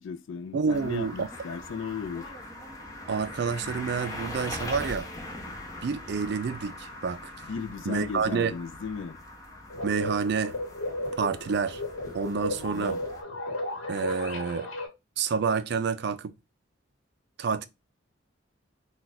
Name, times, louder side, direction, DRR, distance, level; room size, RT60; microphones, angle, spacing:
voice 1, 0.0-2.3 7.5-9.2 12.5-13.0, left 5 dB, 70° left, 0.4 m, -36 dB
voice 2, 0.5-1.3 3.1-5.1 5.8-7.3 7.9-8.5 9.8-10.5 11.2-11.8 12.1-13.0 13.9-14.7 15.2-16.3 17.4-17.6, right 5 dB, 55° right, 0.3 m, -28 dB
sound 1, 0.7-13.2, left 1 dB, 15° left, 0.6 m, -41 dB
sound 2, 9.7-14.9, left 1 dB, 85° left, 1.1 m, -34 dB
2.4 x 2.3 x 3.9 m
head